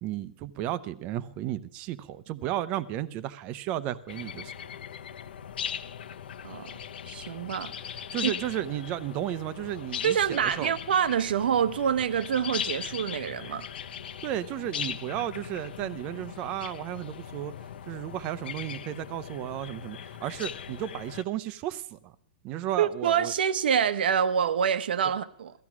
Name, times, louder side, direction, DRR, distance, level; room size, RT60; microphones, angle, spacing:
voice 1, 0.0-4.5 8.1-10.7 14.2-17.5 17.9-22.0 22.4-23.3, right 12 dB, 25° right, 0.7 m, -33 dB
sound 1, 4.1-21.2, left 9 dB, 80° left, 1.1 m, -39 dB
voice 2, 7.1-8.3 10.0-13.7 22.8-25.5, right 8 dB, 80° right, 1.1 m, -26 dB
17.0 x 14.0 x 6.1 m
supercardioid pair, 175°, 5 cm